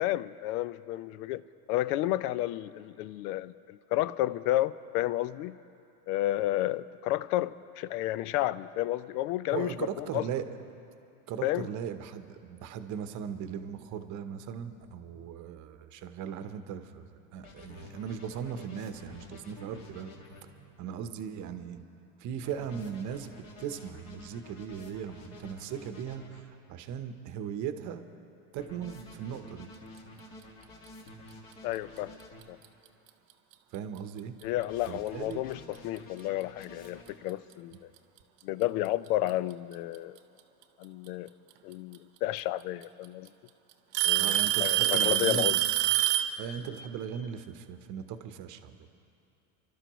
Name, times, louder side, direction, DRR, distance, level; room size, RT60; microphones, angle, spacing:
voice 1, 0.0-1.4 1.7-5.6 6.1-10.2 11.4-11.7 31.6-32.1 32.5-32.6 34.4-37.8 38.4-40.2 40.8-41.3 41.6-43.3 44.0-45.6, left 15 dB, 70° left, 17 dB, 0.6 m, -31 dB
voice 2, 9.5-10.6 11.3-17.1 17.3-20.1 20.4-21.8 22.2-28.0 28.5-29.7 33.7-34.4 34.9-35.4 44.1-45.6 46.4-48.8, right 8 dB, 40° right, 9 dB, 0.9 m, -38 dB
sound 1, 17.4-20.4 22.4-26.4 28.6-32.4 34.4-37.1, left 2 dB, 45° left, 2.1 m, -50 dB
Alarm / Tick-tock, 32.4-32.7 33.5-33.6 34.4-34.5 36.2-36.3 37.5-37.6 38.9-39.3 41.1-41.2 42.4-42.5 42.8-43.3 43.9-46.4, right 13 dB, 90° right, 1.0 m, -26 dB
29.5 x 12.5 x 3.1 m, 2.7 s
supercardioid pair, 135°, 47 cm